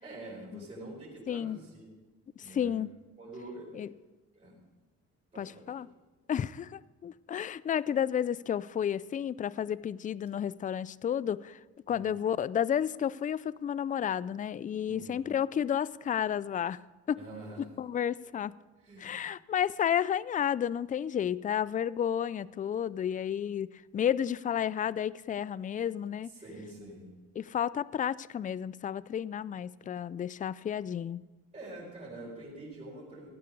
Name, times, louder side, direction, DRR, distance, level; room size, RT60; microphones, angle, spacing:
voice 1, 0.0-1.9 2.4-2.7 3.2-3.7 4.3-4.6 5.3-5.7 11.9-12.2 14.9-15.2 17.1-17.6 18.8-19.2 26.3-27.1 31.5-33.3, right 1 dB, 25° right, -8 dB, 5.0 m, -45 dB
voice 2, 1.3-1.6 2.4-2.9 3.7-3.9 5.4-5.9 6.3-11.6 11.9-16.8 17.1-17.2 17.8-18.5 19.0-26.3 27.4-31.2, left 9 dB, 25° left, 20 dB, 0.3 m, -31 dB
16.5 x 9.7 x 5.3 m, 1.2 s
cardioid pair, 90°, 30 cm